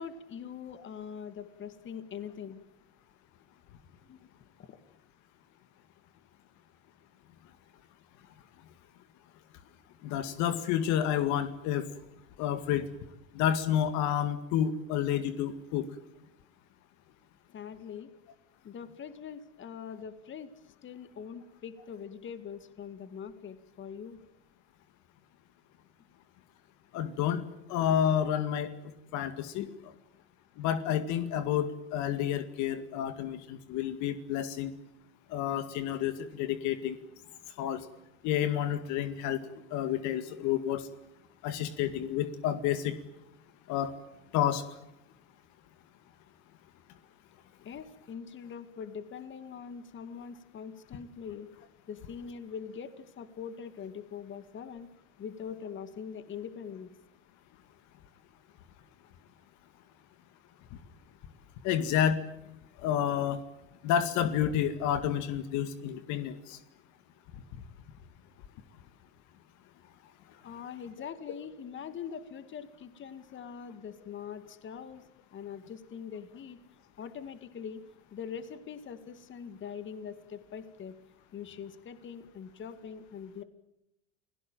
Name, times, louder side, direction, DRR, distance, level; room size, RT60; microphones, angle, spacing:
voice 1, 0.0-2.6 4.0-4.3 4.6-4.8 17.5-18.1 18.6-20.5 20.8-24.2 47.6-51.5 51.9-54.9 55.2-56.9 70.4-75.0 75.3-76.6 77.0-77.8 78.1-81.0 81.3-83.4, left 7 dB, 35° left, 11 dB, 2.2 m, -43 dB
voice 2, 10.0-11.9 12.4-12.9 13.3-15.9 26.9-27.4 27.7-28.7 29.1-29.9 30.6-34.7 35.3-37.0 37.6-37.9 38.2-40.9 41.4-42.9 43.7-43.9 44.3-44.6 61.6-62.2 62.8-63.4 63.8-66.6, left 10 dB, 60° left, 10 dB, 2.1 m, -30 dB
29.5 x 17.5 x 9.2 m, 0.86 s
hypercardioid pair, 95°, 33 cm